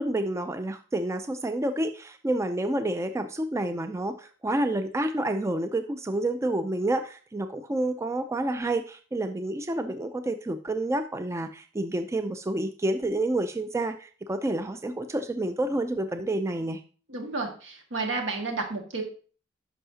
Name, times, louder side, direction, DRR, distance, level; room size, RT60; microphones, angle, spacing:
voice 1, 0.0-16.8, right 1 dB, 15° right, 8 dB, 0.3 m, -29 dB
voice 2, 17.1-19.0, right 3 dB, 75° right, 2 dB, 1.8 m, -31 dB
11.0 x 5.6 x 2.8 m, 0.40 s
head